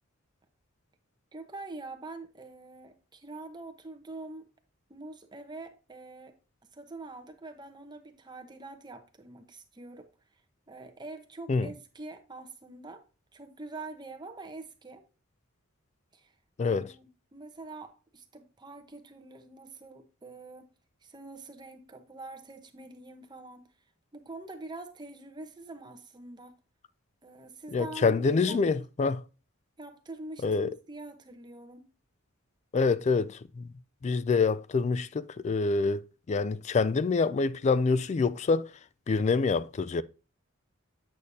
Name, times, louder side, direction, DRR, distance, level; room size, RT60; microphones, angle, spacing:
voice 1, 1.3-4.5 4.9-6.4 6.7-10.1 10.7-13.0 13.3-15.0 16.1-16.3 16.6-20.7 21.0-23.6 24.1-26.5 27.2-28.6 29.8-31.9, right 2 dB, 20° right, 0.9 m, -45 dB
voice 2, 27.7-29.2 30.4-30.7 32.7-33.7 34.0-38.7 39.1-40.0, left 4 dB, 35° left, 0.3 m, -26 dB
8.5 x 6.4 x 2.7 m
head